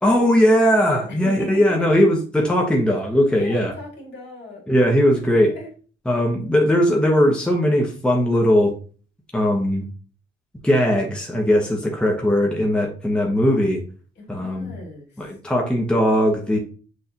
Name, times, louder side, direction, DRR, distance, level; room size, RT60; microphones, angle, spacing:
voice 1, 0.0-3.7 4.7-5.5 6.1-8.7 9.3-9.9 10.6-13.8 14.3-14.7 15.2-16.6, equal, 5° left, 0 dB, 1.0 m, -19 dB
voice 2, 1.1-1.9 3.4-4.6 5.4-5.7 14.2-15.2, left 1 dB, 60° left, -1 dB, 2.2 m, -37 dB
6.3 x 2.6 x 2.9 m, 0.39 s
cardioid pair, 90°, 20 cm